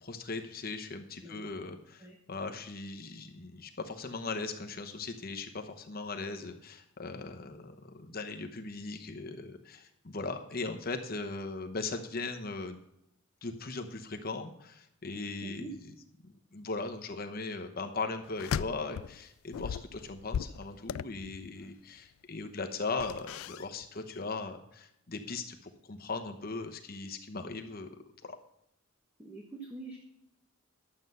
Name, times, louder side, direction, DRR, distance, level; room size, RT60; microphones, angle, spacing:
voice 1, 0.0-2.0 2.3-12.8 13.4-15.7 16.2-27.9 28.2-28.4, left 3 dB, 45° left, 5 dB, 0.9 m, -39 dB
voice 2, 1.2-1.5 2.0-2.2 15.4-15.7 29.2-30.0, right 2 dB, 10° right, -1 dB, 1.3 m, -44 dB
sound 1, 18.3-19.2 19.5-21.6 22.9-23.9 24.1-24.3, left 8 dB, 80° left, 0.3 m, -37 dB
11.5 x 7.8 x 5.5 m, 0.81 s
head